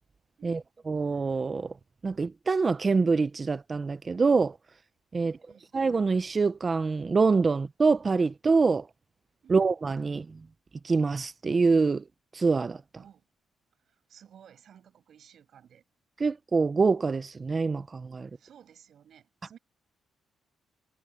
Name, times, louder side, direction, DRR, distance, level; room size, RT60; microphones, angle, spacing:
voice 1, 0.4-1.7 2.0-4.6 5.1-5.4 5.7-8.9 9.5-10.4 10.8-12.0 12.3-12.8 16.2-18.3, right 4 dB, 25° right, 0.5 m, -25 dB
voice 2, 5.2-5.7 9.4-9.6 13.0-13.2 14.1-15.8 18.3-19.6, right 9 dB, 55° right, 6.4 m, -55 dB
cardioid pair, 150°, 0 cm